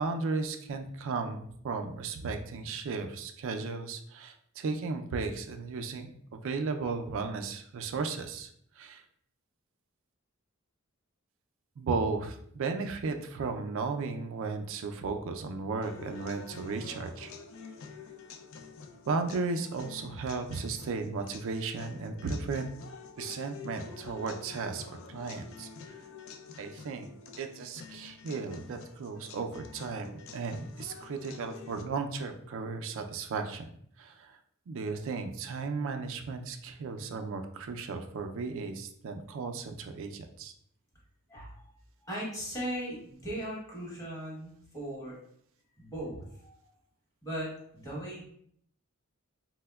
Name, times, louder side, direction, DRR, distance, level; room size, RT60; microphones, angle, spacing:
voice 1, 0.0-8.5 8.8-9.0 11.8-17.3 19.1-22.7 23.2-25.7 26.6-27.1 27.4-33.6 34.0-34.4 34.7-40.5, right 4 dB, 65° right, 6 dB, 0.4 m, -35 dB
sound 1, 15.8-31.8, left 5 dB, 65° left, 0.3 m, -48 dB
voice 2, 41.3-41.7 42.0-45.2 45.8-46.7 47.2-48.2, right 1 dB, 15° left, -4 dB, 0.9 m, -38 dB
4.4 x 2.0 x 2.2 m, 0.68 s
head